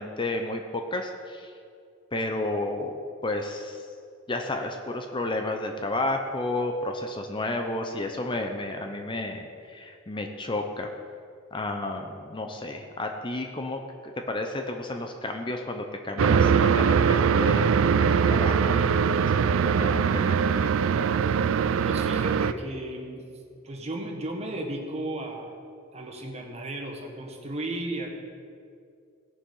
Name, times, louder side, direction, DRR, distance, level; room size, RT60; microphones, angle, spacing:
voice 1, 0.0-1.5 2.1-2.9 3.2-3.8 4.3-10.9 11.5-21.1, left 2 dB, 25° left, 4 dB, 0.7 m, -32 dB
sound 1, 16.2-22.5, right 6 dB, 70° right, 0.4 m, -22 dB
voice 2, 21.8-23.2 23.6-25.6 25.9-28.1, right 1 dB, 30° right, 2 dB, 1.4 m, -34 dB
17.0 x 7.1 x 5.5 m, 2.4 s
head